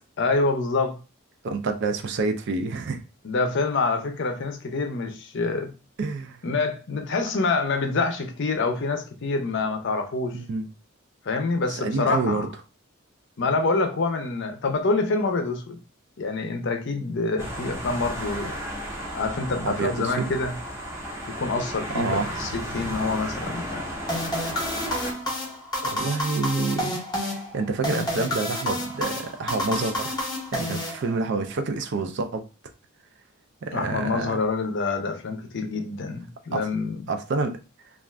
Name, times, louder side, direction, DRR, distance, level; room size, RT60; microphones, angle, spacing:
voice 1, 0.2-1.0 3.2-5.7 6.4-10.4 11.2-12.4 13.4-15.8 16.2-18.5 19.1-20.5 21.4-23.9 33.7-37.0, left 3 dB, 60° left, 0.5 m, -26 dB
voice 2, 1.4-3.0 6.0-6.4 10.3-10.6 11.7-12.5 19.6-20.3 21.9-22.3 25.8-30.2 30.5-32.5 33.6-34.4 36.5-36.7 37.1-37.6, right 3 dB, 55° right, 0.4 m, -28 dB
sound 1, 17.4-25.1, equal, 15° right, 0.6 m, -34 dB
sound 2, 24.1-31.5, left 1 dB, 20° left, 0.7 m, -30 dB
2.4 x 2.4 x 3.1 m
head